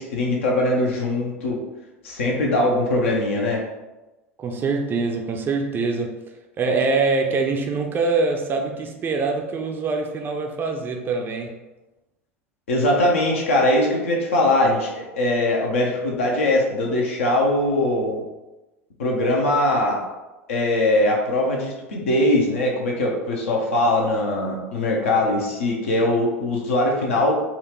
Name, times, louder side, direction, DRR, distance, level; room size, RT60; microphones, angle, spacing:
voice 1, 0.0-1.6 2.0-3.7 12.7-18.2 19.0-20.0 20.5-27.3, left 1 dB, 70° left, -1 dB, 0.8 m, -21 dB
voice 2, 4.4-6.2 6.6-11.5, right 4 dB, 30° right, 3 dB, 0.5 m, -24 dB
4.1 x 2.5 x 3.0 m, 1.1 s
figure-of-eight pair, 80°, 7 cm